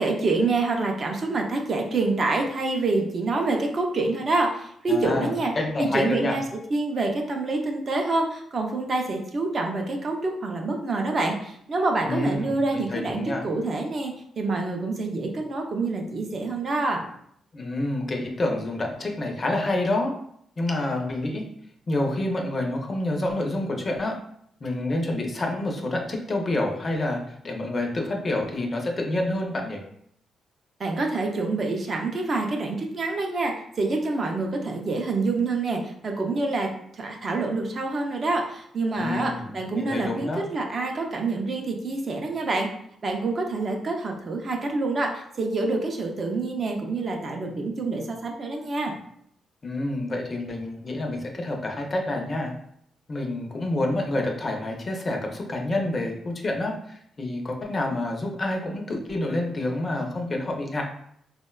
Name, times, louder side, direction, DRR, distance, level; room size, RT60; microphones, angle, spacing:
voice 1, 0.0-5.5 5.8-6.4 6.7-17.0 30.8-42.7 43.0-48.9, right 3 dB, 40° right, 2 dB, 0.4 m, -27 dB
voice 2, 4.9-6.4 12.0-13.4 17.5-20.1 20.6-21.4 21.9-24.1 24.6-29.8 39.0-39.5 39.7-40.4 49.6-52.5 53.1-60.8, left 1 dB, 30° left, 1 dB, 0.4 m, -28 dB
3.5 x 2.1 x 2.2 m, 0.70 s
cardioid pair, 135°, 0 cm